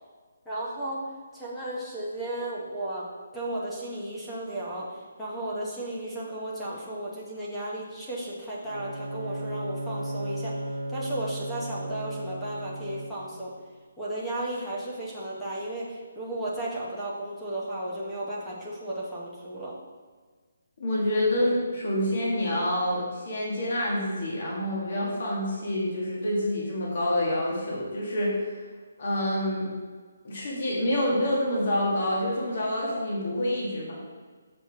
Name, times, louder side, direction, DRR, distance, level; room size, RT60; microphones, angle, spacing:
voice 1, 0.5-1.0 1.3-3.1 3.3-13.5 14.0-19.7, right 1 dB, 5° left, -7 dB, 0.8 m, -34 dB
Bowed string instrument, 8.6-13.5, right 1 dB, 65° right, 0.9 m, -35 dB
voice 2, 20.8-28.6 29.0-29.7 30.2-33.9, left 1 dB, 45° left, -5 dB, 1.8 m, -27 dB
6.2 x 6.0 x 3.6 m, 1.5 s
hypercardioid pair, 175°, 0 cm